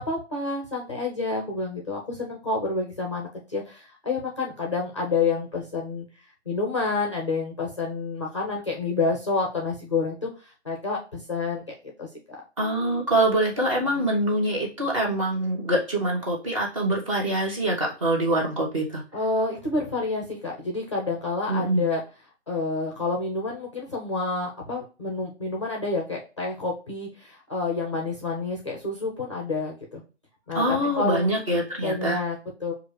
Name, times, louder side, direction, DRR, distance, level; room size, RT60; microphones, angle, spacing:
voice 1, 0.0-6.1 6.5-12.4 19.1-22.0 22.5-30.0 30.5-31.3 31.8-32.7, left 3 dB, 25° left, 0 dB, 0.5 m, -29 dB
voice 2, 12.6-19.0 21.5-21.9 30.5-32.2, right 1 dB, 25° right, -1 dB, 0.9 m, -24 dB
6.2 x 2.4 x 3.2 m, 0.34 s
hypercardioid pair, 170°, 36 cm